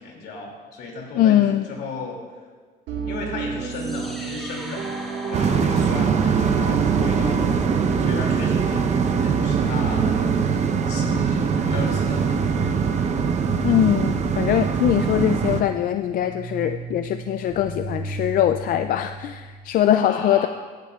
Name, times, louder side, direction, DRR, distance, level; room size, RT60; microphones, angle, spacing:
voice 1, 0.0-1.4 1.7-2.2 3.0-4.9 5.3-7.7 8.0-8.9 9.2-13.1 20.1-20.5, left 3 dB, 80° left, 0 dB, 2.6 m, -35 dB
voice 2, 1.2-1.6 13.6-20.5, left 11 dB, 55° left, 9 dB, 0.4 m, -21 dB
sound 1, 2.9-10.5, right 5 dB, 90° right, 1.7 m, -30 dB
sound 2, 3.7-19.7, right 2 dB, ahead, 1.7 m, -37 dB
sound 3, 5.3-15.6, right 6 dB, 40° right, 0.8 m, -22 dB
16.0 x 10.5 x 2.4 m, 1.5 s
cardioid pair, 110°, 17 cm